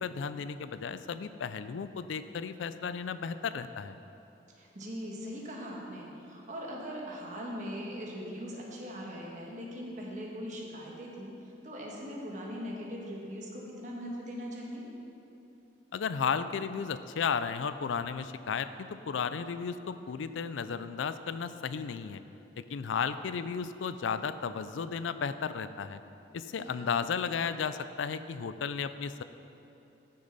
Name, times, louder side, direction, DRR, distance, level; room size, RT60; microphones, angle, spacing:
voice 1, 0.0-4.0 15.9-22.2 22.6-26.0 26.3-29.2, left 6 dB, 90° left, 12 dB, 0.4 m, -34 dB
voice 2, 4.5-14.8 26.6-26.9, equal, 40° right, -3 dB, 1.5 m, -40 dB
13.5 x 6.7 x 4.1 m, 2.9 s
head